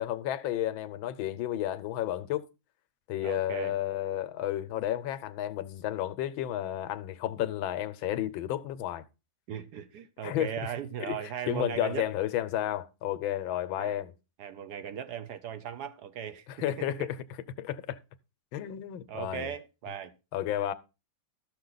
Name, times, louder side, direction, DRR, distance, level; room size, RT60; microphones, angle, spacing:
voice 1, 0.0-2.4 3.1-9.0 10.2-10.7 11.1-14.1 16.5-17.2 17.6-18.0 18.5-19.5 20.3-20.7, left 12 dB, 90° left, 1.5 m, -32 dB
voice 2, 3.2-3.7 9.5-12.1 13.7-14.0 14.4-16.5 16.8-17.1 19.1-20.1, right 9 dB, 65° right, 1.1 m, -38 dB
12.5 x 6.6 x 3.9 m
omnidirectional pair, 2.1 m